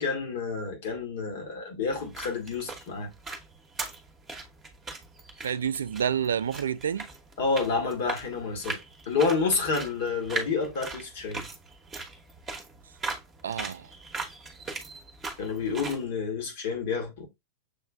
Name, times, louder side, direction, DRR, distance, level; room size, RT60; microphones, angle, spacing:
voice 1, 0.0-3.1 7.4-8.8 9.1-11.4 15.4-17.3, left 4 dB, 55° left, 1.5 m, -29 dB
sound 1, 1.9-16.0, right 3 dB, 15° right, 1.1 m, -40 dB
voice 2, 5.4-7.1 13.4-13.9, right 8 dB, 65° right, 0.3 m, -29 dB
6.8 x 3.1 x 2.3 m
figure-of-eight pair, 90°, 0 cm